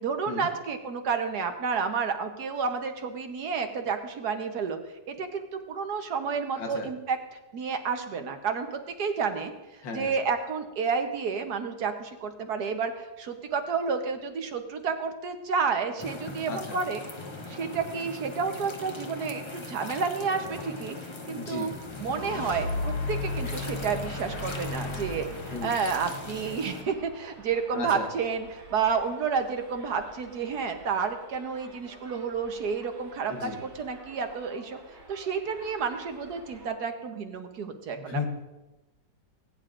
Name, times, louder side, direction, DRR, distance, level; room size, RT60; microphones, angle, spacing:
voice 1, 0.0-4.8 5.1-7.2 7.5-9.5 9.9-17.0 17.5-21.0 21.3-21.7 22.0-34.8 35.1-38.2, right 5 dB, 65° right, 6 dB, 1.4 m, -30 dB
voice 2, 6.6-6.9 9.8-10.1 16.5-16.8 21.2-21.7 25.5-25.7 27.7-28.1 33.3-33.6 38.0-38.2, left 4 dB, 85° left, 3 dB, 2.0 m, -35 dB
sound 1, 16.0-26.8, left 2 dB, 25° left, 0.6 m, -40 dB
sound 2, 21.8-27.1, left 2 dB, 70° left, 1.9 m, -35 dB
Subway metro underground, 26.3-36.7, right 2 dB, 80° right, 4.1 m, -51 dB
19.0 x 9.5 x 2.5 m, 1.0 s
omnidirectional pair, 1.9 m